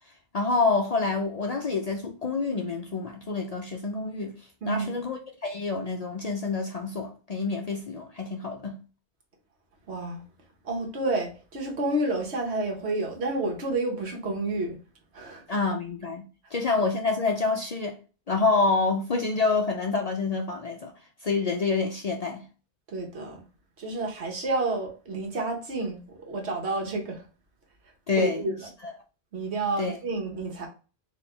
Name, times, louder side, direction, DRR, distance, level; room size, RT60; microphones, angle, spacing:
voice 1, 0.3-4.3 4.7-8.8 15.5-16.3 16.5-18.0 18.3-20.9 21.2-22.4 28.1-28.6 28.8-28.9 29.8-30.0, left 4 dB, 50° left, 0.5 m, -27 dB
voice 2, 4.6-5.0 9.9-10.2 10.6-14.8 15.1-15.4 22.9-23.4 23.8-27.2 28.1-28.5 29.3-30.7, right 2 dB, 75° right, 1.4 m, -30 dB
4.2 x 2.7 x 3.2 m
omnidirectional pair, 1.1 m